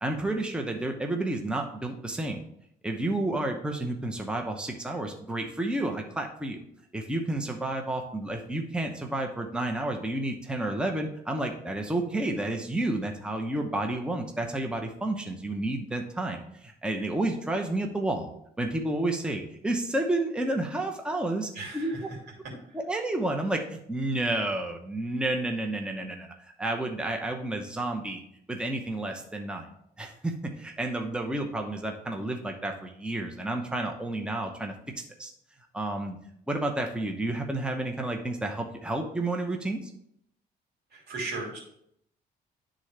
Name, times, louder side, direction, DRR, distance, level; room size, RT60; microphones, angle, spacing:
voice 1, 0.0-2.4 2.8-6.6 6.9-18.3 18.6-21.9 22.7-28.2 28.5-29.7 30.0-34.7 35.2-35.3 35.7-36.2 36.5-39.9, right 2 dB, 5° right, 3 dB, 0.8 m, -30 dB
voice 2, 21.5-22.0 40.9-41.6, right 3 dB, 75° right, 0 dB, 2.5 m, -36 dB
11.0 x 3.7 x 3.3 m, 0.72 s
cardioid pair, 85°, 17 cm